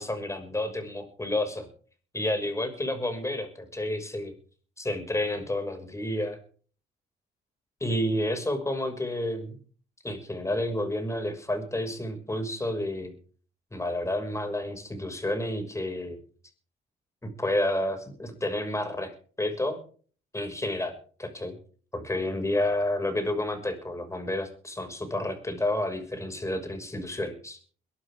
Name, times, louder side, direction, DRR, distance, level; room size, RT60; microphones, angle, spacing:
voice 1, 0.0-1.7 2.1-4.3 4.8-6.4 7.8-9.6 10.0-13.1 13.7-16.2 17.2-19.8 20.3-20.9 21.2-21.6 21.9-27.6, left 1 dB, 15° left, 6 dB, 6.0 m, -30 dB
22.5 x 13.0 x 3.7 m, 0.42 s
cardioid pair, 90°, 20 cm